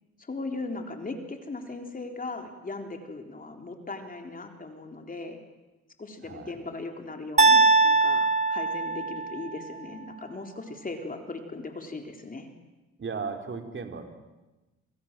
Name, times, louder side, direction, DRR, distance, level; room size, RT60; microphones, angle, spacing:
voice 1, 0.2-5.4 6.0-12.5, left 3 dB, 30° left, 4 dB, 3.8 m, -38 dB
sound 1, 7.4-9.5, right 3 dB, 25° right, 1.9 m, -21 dB
voice 2, 13.0-14.2, right 5 dB, 40° right, 5 dB, 4.0 m, -36 dB
27.5 x 27.0 x 7.5 m, 1.1 s
cardioid pair, 90°, 30 cm